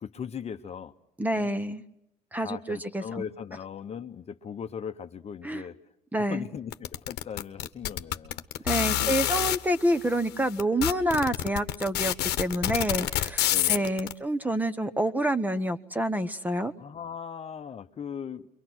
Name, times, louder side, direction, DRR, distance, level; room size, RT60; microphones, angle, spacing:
voice 1, 0.0-0.9 1.3-1.5 2.4-5.8 6.2-9.3 13.5-13.9 16.8-18.5, left 7 dB, 40° left, 0.9 m, -39 dB
voice 2, 1.2-1.8 2.3-3.2 5.4-5.6 6.1-6.5 8.6-16.7, right 1 dB, 10° right, 1.0 m, -28 dB
sound 1, 6.7-9.6 10.3-10.4 10.6-14.1, left 14 dB, 85° left, 1.0 m, -27 dB
29.5 x 23.5 x 6.2 m
cardioid pair, 110°, 17 cm